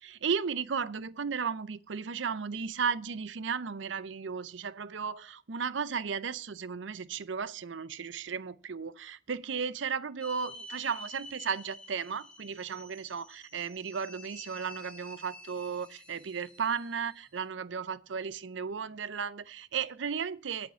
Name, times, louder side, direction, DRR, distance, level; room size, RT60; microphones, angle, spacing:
voice 1, 0.0-20.7, right 6 dB, 75° right, 0.6 m, -35 dB
sound 1, 10.2-17.3, left 1 dB, 5° left, 1.6 m, -49 dB
8.6 x 8.0 x 8.2 m
head